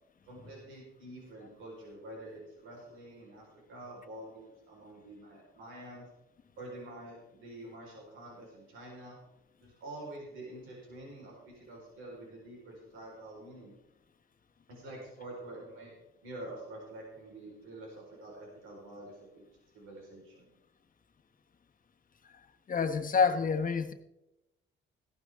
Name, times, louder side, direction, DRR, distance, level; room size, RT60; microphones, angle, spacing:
voice 1, 0.2-6.1 6.5-9.2 9.6-13.7 14.7-15.9 16.2-19.4 19.7-20.5, right 1 dB, 85° right, -2 dB, 4.5 m, -47 dB
voice 2, 22.7-23.9, left 5 dB, 45° left, 7 dB, 1.2 m, -27 dB
15.5 x 12.5 x 3.6 m, 0.91 s
cardioid pair, 90°, 20 cm